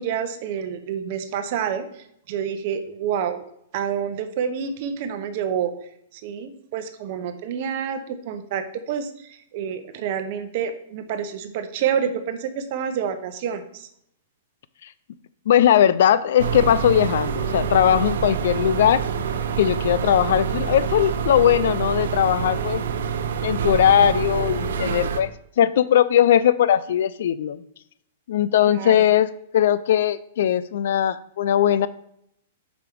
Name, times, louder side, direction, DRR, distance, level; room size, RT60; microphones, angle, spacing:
voice 1, 0.0-3.4 3.7-5.7 6.1-13.9 28.7-29.0, right 8 dB, 50° right, 9 dB, 0.8 m, -28 dB
voice 2, 15.5-19.0 19.6-22.8 23.4-27.6 28.3-31.9, left 10 dB, 65° left, 16 dB, 0.4 m, -19 dB
sound 1, 16.4-25.2, right 7 dB, 80° right, 0.7 m, -26 dB
5.1 x 4.7 x 6.0 m, 0.72 s
hypercardioid pair, 155°, 0 cm